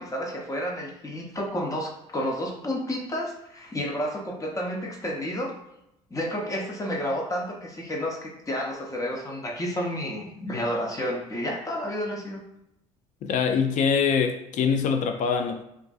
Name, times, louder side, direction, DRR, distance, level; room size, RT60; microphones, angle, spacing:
voice 1, 0.0-5.5 6.1-12.4, equal, 20° left, 0.7 m, -31 dB
voice 2, 13.2-15.6, left 6 dB, 55° left, 0.4 m, -24 dB
2.5 x 2.5 x 2.3 m
supercardioid pair, 75°, 15 cm